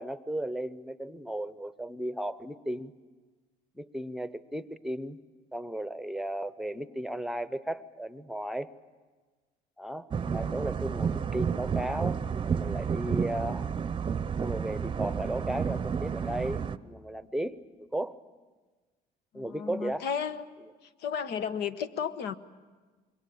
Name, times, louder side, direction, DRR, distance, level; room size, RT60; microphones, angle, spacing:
voice 1, 0.0-2.9 3.8-5.2 5.5-8.7 9.8-13.7 14.4-17.6 17.9-18.2 19.3-20.1, right 1 dB, ahead, 13 dB, 0.9 m, -35 dB
sound 1, 10.1-16.8, right 6 dB, 30° right, 0.7 m, -31 dB
voice 2, 19.3-20.4 21.0-22.3, left 7 dB, 75° left, 11 dB, 1.2 m, -33 dB
26.5 x 22.5 x 8.7 m, 1.3 s
cardioid pair, 110°, 17 cm